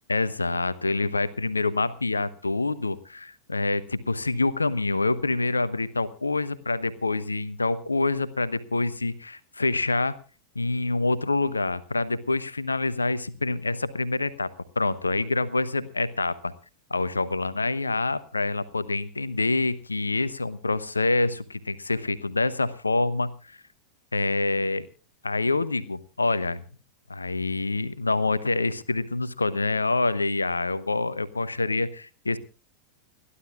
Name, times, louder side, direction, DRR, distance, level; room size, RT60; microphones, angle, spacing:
voice 1, 0.1-10.2 10.5-14.5 14.8-16.5 16.9-23.6 24.1-24.8 25.2-26.6 27.1-32.4, left 3 dB, 80° left, 16 dB, 1.0 m, -26 dB
29.5 x 11.5 x 2.4 m, 0.35 s
figure-of-eight pair, 90°, 0 cm